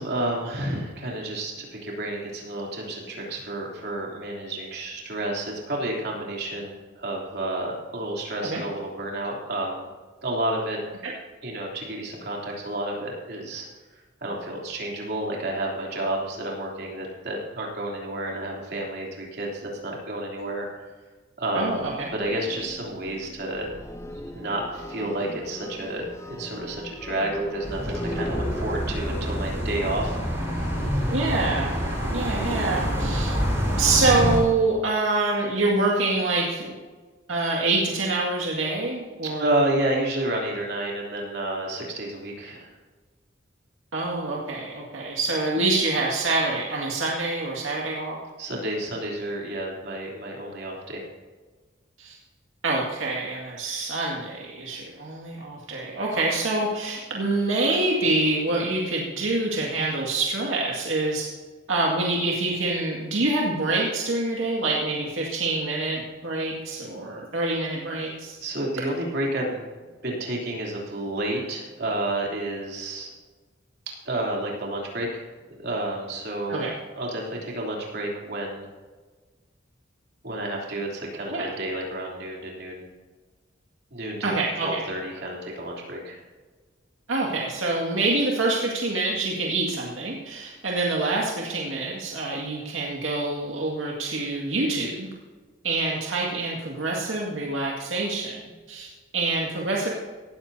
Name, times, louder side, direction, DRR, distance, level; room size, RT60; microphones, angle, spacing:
voice 1, 0.0-9.9 10.2-10.8 11.4-13.7 13.9-20.7 21.4-21.9 22.1-23.7 24.3-31.0 39.4-42.7 48.4-51.0 68.4-73.1 74.0-75.2 75.5-76.7 77.0-78.7 80.2-82.9 83.9-84.3 84.6-86.2, right 1 dB, 55° right, -2 dB, 3.2 m, -30 dB
voice 2, 21.5-22.1 31.1-31.8 32.1-33.4 33.8-36.8 37.3-39.5 43.9-48.2 52.0-52.2 52.6-61.3 61.7-68.4 76.5-76.7 81.3-81.5 84.2-84.8 87.1-95.1 95.6-98.4 98.7-99.9, right 2 dB, 80° right, -3 dB, 2.1 m, -26 dB
sound 1, 21.6-32.5, equal, 15° left, 0.6 m, -38 dB
sound 2, 27.6-34.4, equal, 15° right, 4.7 m, -27 dB
18.0 x 13.5 x 2.8 m, 1.3 s
head